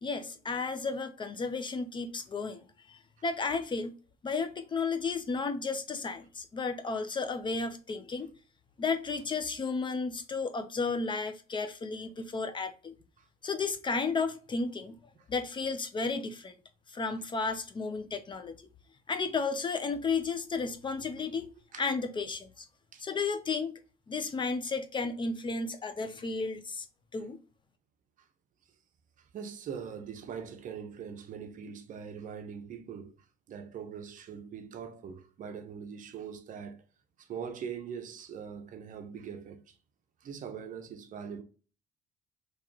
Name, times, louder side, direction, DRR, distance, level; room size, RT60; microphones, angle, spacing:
voice 1, 0.0-4.0 4.2-8.3 8.8-12.9 13.4-14.9 15.3-16.6 16.9-18.6 19.1-21.5 21.8-22.7 23.0-23.8 24.1-26.9 27.1-27.4, left 4 dB, 30° left, 0.5 m, -33 dB
voice 2, 29.2-33.2 33.5-36.8 37.2-39.7 40.2-41.4, right 7 dB, 50° right, 0.7 m, -42 dB
2.9 x 2.9 x 3.6 m
cardioid pair, 110°, 17 cm